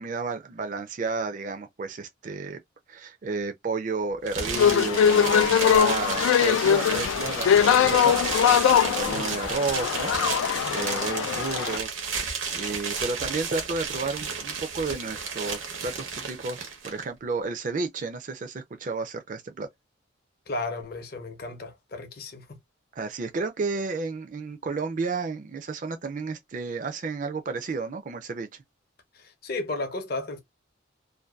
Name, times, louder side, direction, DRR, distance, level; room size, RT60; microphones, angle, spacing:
voice 1, 0.0-2.6 2.9-10.1 10.7-12.0 12.5-19.7 23.0-28.5, right 4 dB, 40° right, 0.4 m, -32 dB
sound 1, 4.3-17.0, right 5 dB, 80° right, 0.8 m, -32 dB
sound 2, 4.6-11.8, left 8 dB, 90° left, 0.3 m, -22 dB
voice 2, 20.5-22.6 29.1-30.4, left 2 dB, 50° left, 0.6 m, -34 dB
2.6 x 2.2 x 2.2 m
head